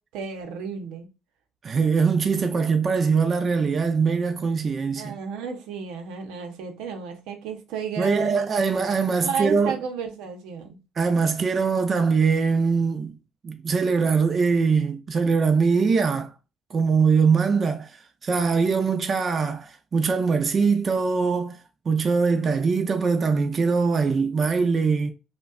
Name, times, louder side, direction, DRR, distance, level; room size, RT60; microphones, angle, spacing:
voice 1, 0.1-1.1 5.0-8.4 9.2-10.8, right 6 dB, 90° right, 0.8 m, -32 dB
voice 2, 1.6-5.1 8.0-9.8 11.0-13.1 13.4-16.3 16.7-21.6 21.9-25.1, right 5 dB, 40° right, 0.6 m, -22 dB
5.1 x 2.2 x 2.4 m
cardioid pair, 90°, 0 cm